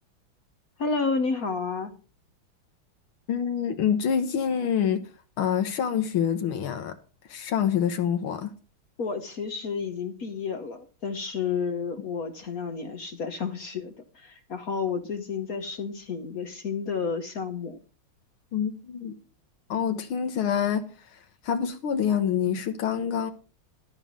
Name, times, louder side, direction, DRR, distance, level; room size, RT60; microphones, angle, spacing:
voice 1, 0.8-1.9 9.0-17.8, left 5 dB, 55° left, 1.2 m, -31 dB
voice 2, 3.3-5.0 5.4-6.9 7.3-8.5 18.5-19.2 19.7-23.3, left 8 dB, 75° left, 1.9 m, -26 dB
13.0 x 5.5 x 7.3 m
omnidirectional pair, 2.3 m